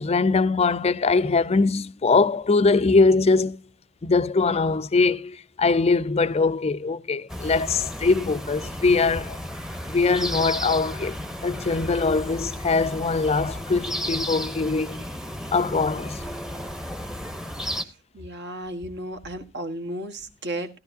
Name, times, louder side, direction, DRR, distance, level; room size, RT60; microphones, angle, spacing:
voice 1, 0.0-3.6 4.0-9.4 9.9-11.1 11.4-15.0 15.5-16.2, left 4 dB, 30° left, 0.5 m, -22 dB
sound 1, 7.3-17.8, equal, 5° right, 0.9 m, -33 dB
voice 2, 18.1-20.8, right 1 dB, 55° right, 1.4 m, -34 dB
15.5 x 11.0 x 2.6 m
head